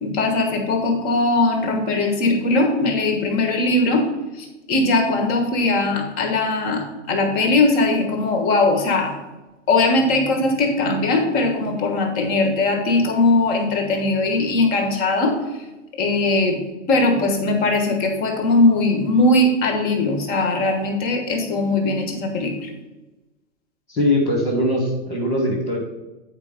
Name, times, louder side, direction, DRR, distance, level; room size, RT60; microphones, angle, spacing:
voice 1, 0.0-4.0 4.4-9.1 9.7-15.3 16.0-16.6 16.9-22.7, left 2 dB, 25° left, 4 dB, 1.2 m, -20 dB
voice 2, 23.9-25.8, left 1 dB, 5° left, -8 dB, 0.4 m, -21 dB
8.4 x 4.6 x 5.1 m, 1.1 s
hypercardioid pair, 155°, 39 cm